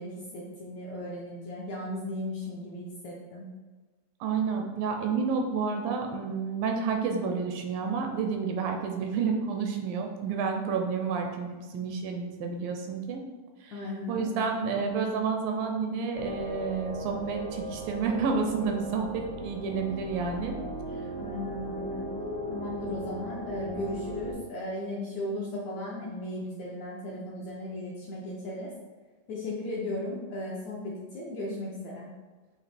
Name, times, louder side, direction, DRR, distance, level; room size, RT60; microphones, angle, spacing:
voice 1, 0.0-3.5 13.7-14.5 21.2-22.1 22.5-28.7 29.3-32.1, left 1 dB, 80° left, -4 dB, 1.6 m, -36 dB
voice 2, 4.2-13.2 13.6-13.7 14.1-20.5, right 5 dB, 80° right, 3 dB, 2.2 m, -30 dB
sound 1, 16.1-24.3, equal, 40° left, 0.7 m, -37 dB
8.2 x 2.8 x 4.2 m, 1.3 s
omnidirectional pair, 4.3 m